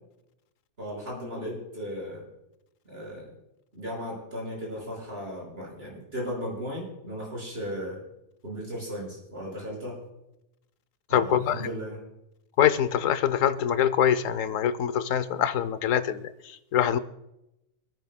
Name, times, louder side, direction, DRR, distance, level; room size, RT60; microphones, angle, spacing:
voice 1, 0.8-2.2 2.9-3.3 3.7-8.0 8.4-10.0 11.1-12.0, equal, 45° right, -4 dB, 5.9 m, -36 dB
voice 2, 11.1-11.7 12.6-17.0, left 9 dB, 75° left, 13 dB, 1.1 m, -24 dB
27.0 x 10.5 x 2.2 m, 0.89 s
omnidirectional pair, 1.4 m